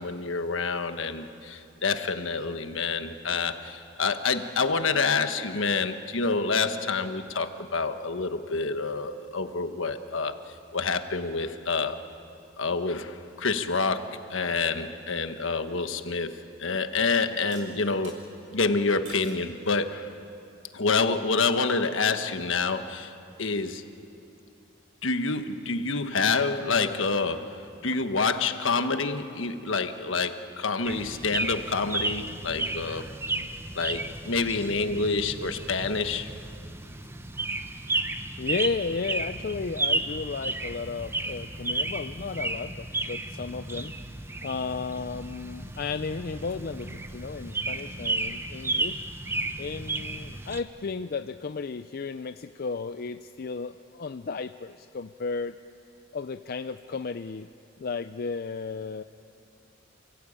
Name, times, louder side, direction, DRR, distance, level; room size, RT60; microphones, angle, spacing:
voice 1, 0.0-10.4 10.7-12.0 12.6-18.2 18.5-20.1 20.7-23.1 23.4-23.8 25.0-33.1 33.7-36.3, left 4 dB, 70° left, 8 dB, 1.3 m, -27 dB
sound 1, 17.5-18.2 19.1-19.5 20.1-20.5, right 3 dB, 75° right, 6.4 m, -48 dB
sound 2, 30.8-50.6, right 2 dB, 10° right, 0.8 m, -33 dB
voice 2, 38.4-43.9 44.4-49.0 49.6-55.5 56.1-57.5 57.8-59.0, left 4 dB, 45° left, 9 dB, 0.4 m, -34 dB
29.0 x 16.5 x 8.8 m, 2.7 s
head